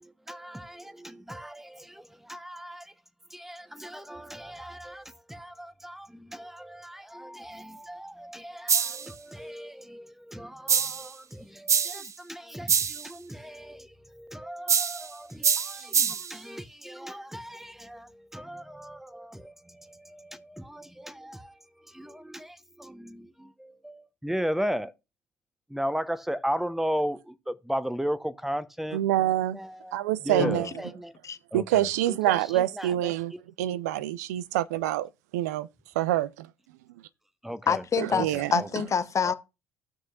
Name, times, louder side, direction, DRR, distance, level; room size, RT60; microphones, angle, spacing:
voice 1, 0.0-2.9 3.3-21.6 21.9-24.9 25.7-29.0 29.5-30.0 30.2-31.1 31.5-31.9 32.3-33.1 37.4-37.8 38.1-38.2 38.6-38.7 39.2-39.3, equal, 5° right, 0.8 m, -36 dB
sound 1, 8.7-9.1 10.7-11.1 11.7-12.1 12.7-13.1 14.7-15.1 15.4-16.3, right 7 dB, 35° right, 0.5 m, -25 dB
voice 2, 28.9-29.6 29.9-30.7 31.5-33.3 33.6-35.6 36.0-36.3 38.0-38.5, right 13 dB, 85° right, 0.4 m, -26 dB
voice 3, 37.7-39.3, left 6 dB, 35° left, 1.0 m, -26 dB
16.5 x 6.2 x 2.4 m
hypercardioid pair, 65°, 9 cm